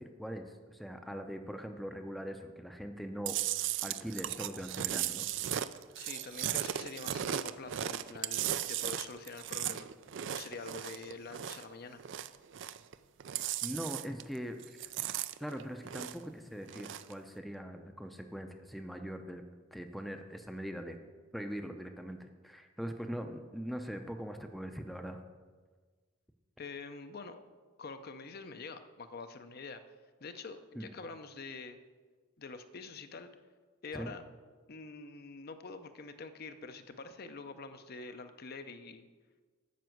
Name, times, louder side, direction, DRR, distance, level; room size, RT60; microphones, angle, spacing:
voice 1, 0.0-3.4 3.8-5.3 13.6-14.6 15.4-19.4 19.7-21.0 21.3-25.2 30.8-30.9 33.9-34.1, equal, ahead, 5 dB, 0.5 m, -41 dB
Chewing mastication, 3.3-11.7 12.0-12.9 13.2-14.4 14.6-16.3 16.6-17.1, right 11 dB, 60° right, 0.4 m, -36 dB
voice 2, 6.0-9.9 10.3-12.0 26.6-27.4 27.8-29.8 30.2-31.8 32.4-33.3 33.8-34.2 34.7-39.1, left 4 dB, 45° left, 9 dB, 0.6 m, -46 dB
9.3 x 6.1 x 7.8 m, 1.5 s
head